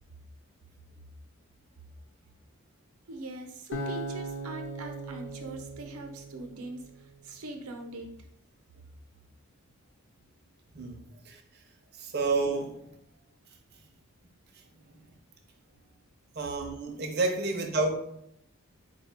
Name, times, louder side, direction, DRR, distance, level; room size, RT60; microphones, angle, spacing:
voice 1, 3.1-8.3, right 2 dB, 85° right, 0.7 m, -42 dB
Acoustic guitar, 3.7-6.9, right 1 dB, 60° left, 0.7 m, -38 dB
voice 2, 10.7-11.4 12.0-12.9 14.9-15.0 16.4-17.9, right 3 dB, 45° right, 0.5 m, -30 dB
4.3 x 2.3 x 4.2 m
head